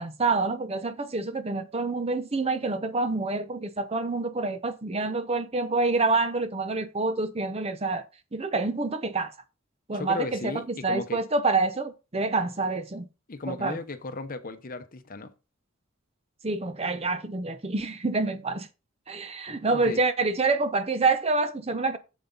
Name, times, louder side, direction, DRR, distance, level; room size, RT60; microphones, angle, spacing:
voice 1, 0.0-8.0 8.3-9.3 9.9-13.1 13.5-13.8 16.4-18.7 19.1-22.0, right 3 dB, 30° right, 0.7 m, -27 dB
voice 2, 9.9-11.2 13.3-15.3 19.7-20.0, left 3 dB, 40° left, 0.8 m, -35 dB
7.5 x 7.2 x 3.9 m
head